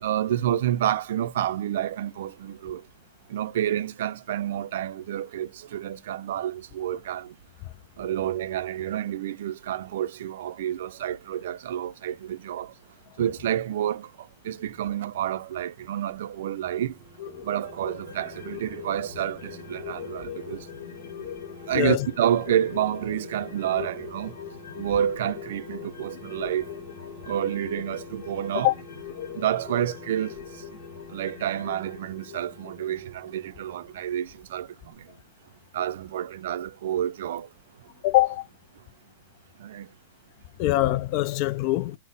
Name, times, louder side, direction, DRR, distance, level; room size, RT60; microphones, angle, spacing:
voice 1, 0.0-2.8 3.3-7.3 8.0-12.7 13.2-14.1 14.4-16.9 17.4-20.6 21.7-24.3 24.8-26.6 27.3-28.7 29.3-30.3 31.1-34.7 35.7-37.5 39.6-39.9, right 11 dB, 65° right, 0.4 m, -29 dB
sound 1, 16.4-34.6 34.9-35.0, equal, 20° right, 0.7 m, -49 dB
sound 2, 17.2-34.0 34.3-34.4, left 9 dB, 75° left, 1.0 m, -41 dB
voice 2, 21.7-22.1 28.6-28.7 38.0-38.4 40.6-42.0, left 16 dB, 45° left, 0.3 m, -23 dB
4.1 x 2.0 x 3.8 m
hypercardioid pair, 130°, 0 cm